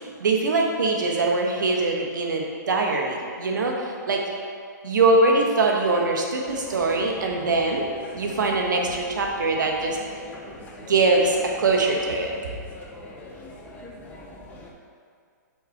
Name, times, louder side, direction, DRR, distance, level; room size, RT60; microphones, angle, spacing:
voice 1, 0.2-4.2 4.8-7.9 8.1-10.0 10.9-12.3, right 3 dB, 80° right, 0 dB, 1.2 m, -22 dB
sound 1, 6.4-14.7, left 2 dB, 15° left, 0.6 m, -42 dB
5.7 x 3.8 x 5.7 m, 2.2 s
hypercardioid pair, 150°, 10 cm